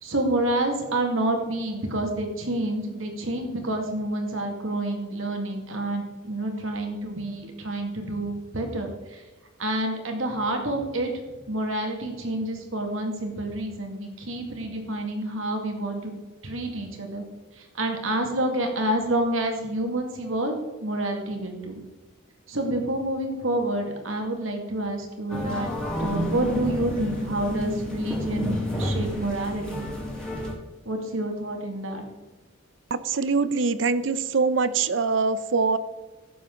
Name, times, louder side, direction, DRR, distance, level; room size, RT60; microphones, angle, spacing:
voice 1, 0.0-9.2 9.6-16.1 16.4-17.2 17.6-20.6 20.8-21.8 22.5-25.7 26.0-29.9 30.9-32.1, right 1 dB, 75° right, 3 dB, 2.0 m, -28 dB
sound 1, 25.3-30.5, left 1 dB, 5° left, 2.5 m, -30 dB
voice 2, 32.9-35.8, right 4 dB, 60° right, 14 dB, 0.6 m, -23 dB
15.5 x 7.0 x 3.8 m, 1.2 s
head